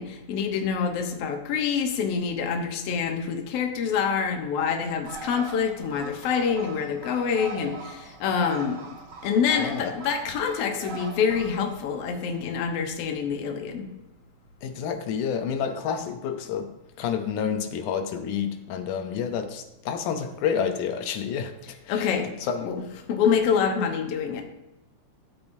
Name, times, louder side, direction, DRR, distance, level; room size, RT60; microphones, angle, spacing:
voice 1, 0.0-8.8 9.2-13.9 21.6-22.3 22.6-24.4, left 6 dB, 60° left, 3 dB, 1.9 m, -26 dB
Bird, 5.1-12.5, right 3 dB, 50° right, 1.4 m, -41 dB
voice 2, 9.6-10.0 14.6-22.8, left 7 dB, 85° left, 7 dB, 2.3 m, -29 dB
13.5 x 9.7 x 2.7 m, 0.98 s
omnidirectional pair, 3.5 m